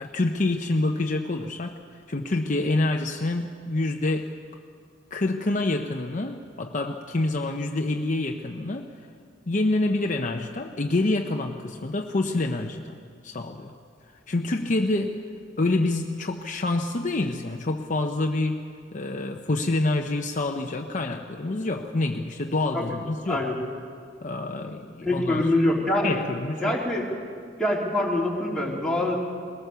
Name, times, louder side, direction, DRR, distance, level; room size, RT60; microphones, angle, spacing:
voice 1, 0.0-1.8 2.1-4.3 5.1-8.9 9.5-13.0 13.2-13.7 14.1-15.2 15.6-18.7 18.9-23.5 24.2-25.5 26.0-26.8, left 2 dB, 45° left, 4 dB, 0.8 m, -27 dB
voice 2, 25.0-26.1 26.6-27.0 27.6-29.2, left 1 dB, 5° left, -5 dB, 3.4 m, -24 dB
21.0 x 18.0 x 6.9 m, 2.2 s
head